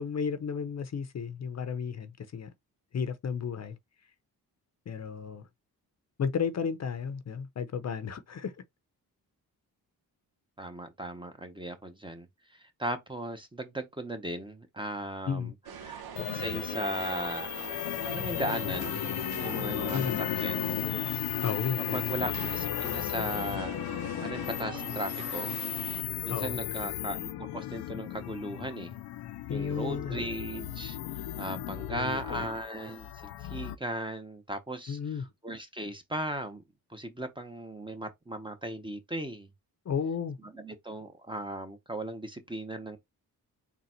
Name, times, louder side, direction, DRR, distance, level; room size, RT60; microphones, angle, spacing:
voice 1, 0.0-2.5 2.9-3.8 4.9-5.5 6.2-8.5 15.3-15.5 19.9-20.2 21.4-22.1 26.3-26.6 29.5-30.3 31.9-32.4 34.9-35.2 39.9-40.4, left 6 dB, 45° left, 0.6 m, -33 dB
voice 2, 10.6-12.3 12.6-15.5 15.8-16.0 16.3-17.5 18.1-19.0 19.4-20.0 20.4-20.7 21.9-25.6 26.2-28.9 29.5-35.0 35.4-36.6 36.9-39.5 40.4-43.0, right 1 dB, 15° right, 0.8 m, -37 dB
sound 1, 15.7-26.0, right 8 dB, 80° right, 0.8 m, -43 dB
sound 2, 16.2-33.8, left 14 dB, 90° left, 0.5 m, -35 dB
3.9 x 2.3 x 4.3 m
cardioid pair, 85°, 37 cm